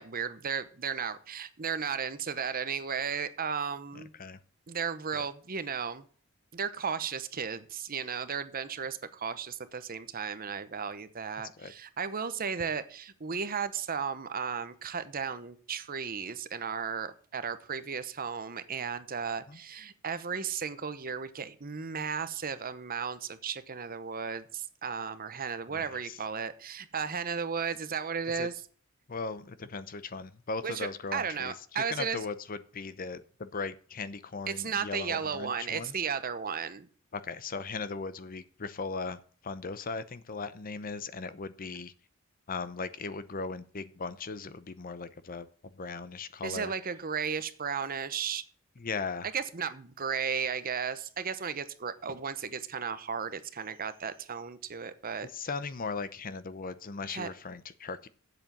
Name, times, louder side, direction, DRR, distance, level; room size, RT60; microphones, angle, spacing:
voice 1, 0.0-4.1 4.7-6.0 6.5-28.5 30.6-32.2 34.5-36.9 46.4-48.4 49.3-55.3 57.1-57.3, right 6 dB, 45° right, 13 dB, 0.9 m, -35 dB
voice 2, 3.9-4.4 5.1-5.3 11.6-11.7 19.5-19.6 25.7-26.2 28.3-28.5 29.1-31.5 31.9-35.9 37.1-41.9 42.5-46.7 48.8-49.3 55.3-58.1, left 4 dB, 40° left, 14 dB, 0.7 m, -38 dB
8.0 x 7.6 x 6.9 m, 0.42 s
head